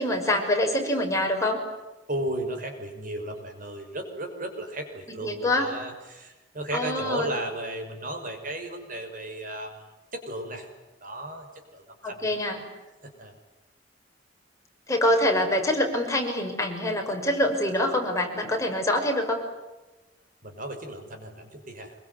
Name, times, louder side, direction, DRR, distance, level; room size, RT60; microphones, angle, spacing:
voice 1, 0.0-1.6 5.2-5.7 6.7-7.3 12.0-12.6 14.9-19.4, left 1 dB, 15° left, 2 dB, 6.0 m, -25 dB
voice 2, 2.1-9.9 10.1-10.7 11.0-12.3 13.0-13.4 20.4-21.9, right 1 dB, 45° right, 5 dB, 5.9 m, -35 dB
26.0 x 24.0 x 9.5 m, 1.1 s
head